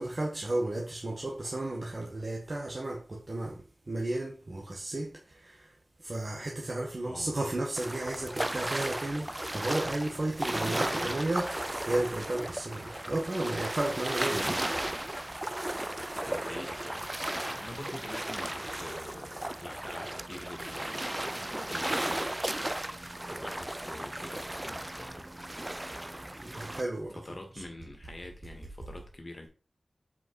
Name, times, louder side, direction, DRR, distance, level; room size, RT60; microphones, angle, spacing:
voice 1, 0.0-3.6 3.9-5.7 6.0-11.5 11.9-14.6 26.4-27.6, right 2 dB, 45° right, 1.8 m, -33 dB
voice 2, 7.0-7.4 10.9-11.4 14.3-15.0 16.3-22.3 23.4-25.3 27.2-29.5, left 1 dB, 40° left, 2.1 m, -45 dB
sound 1, 7.8-26.8, right 1 dB, 20° right, 0.4 m, -35 dB
7.7 x 5.6 x 4.8 m
wide cardioid pair, 80°, 0 cm